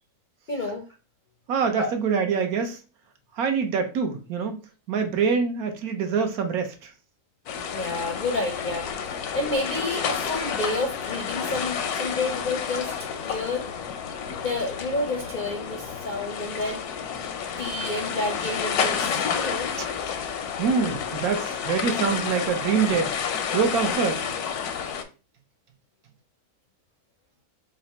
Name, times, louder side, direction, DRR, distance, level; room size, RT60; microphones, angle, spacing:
voice 1, 0.5-0.9 1.8-1.9 7.7-12.9 13.2-13.6 14.4-16.8 17.6-19.7, left 2 dB, 55° left, 0.5 m, -30 dB
voice 2, 1.5-2.8 3.3-4.6 4.9-6.9 19.8-19.9 20.6-23.1 23.5-24.3, right 6 dB, 75° right, 1.2 m, -25 dB
sound 1, 7.5-25.0, left 7 dB, 85° left, 1.1 m, -30 dB
4.1 x 2.1 x 4.1 m
omnidirectional pair, 1.6 m